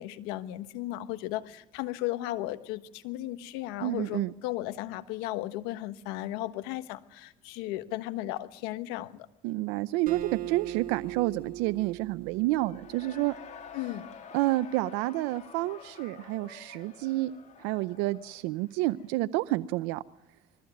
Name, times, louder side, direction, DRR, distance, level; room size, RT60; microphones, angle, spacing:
voice 1, 0.0-9.3 13.7-14.1, left 15 dB, 85° left, 11 dB, 1.4 m, -35 dB
voice 2, 3.8-4.3 9.4-13.4 14.3-17.3 17.6-20.0, right 18 dB, 80° right, 12 dB, 0.7 m, -29 dB
Acoustic guitar, 10.1-13.5, right 14 dB, 55° right, 2.3 m, -39 dB
Cheering / Crowd, 12.5-19.2, left 7 dB, 50° left, 3.7 m, -49 dB
21.5 x 14.5 x 9.2 m, 0.89 s
supercardioid pair, 85°, 16 cm